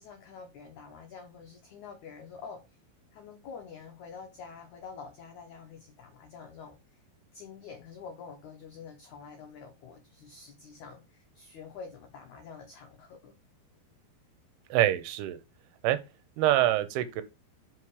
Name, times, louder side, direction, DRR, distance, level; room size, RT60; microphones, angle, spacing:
voice 1, 0.0-2.8 3.1-7.0 7.3-13.3, left 5 dB, 85° left, 1.7 m, -47 dB
voice 2, 14.7-15.4 15.8-16.0 16.4-17.2, right 13 dB, 80° right, 2.5 m, -25 dB
6.0 x 5.6 x 4.7 m
omnidirectional pair, 4.8 m